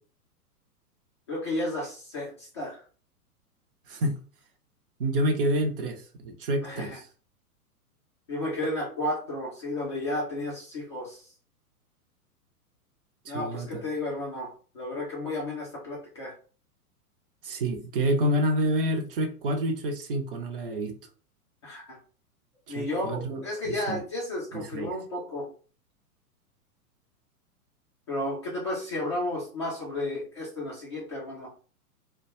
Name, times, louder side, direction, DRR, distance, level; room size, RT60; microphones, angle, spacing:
voice 1, 1.3-2.8 6.6-7.0 8.3-11.3 13.3-16.4 21.6-22.0 22.7-25.5 28.1-31.5, left 1 dB, 20° left, -5 dB, 0.3 m, -33 dB
voice 2, 3.9-4.2 5.0-7.0 13.2-13.8 17.4-20.9 22.7-24.0 24.5-24.9, right 1 dB, 40° right, 4 dB, 0.5 m, -28 dB
2.2 x 2.1 x 2.9 m, 0.40 s
figure-of-eight pair, 105°, 46 cm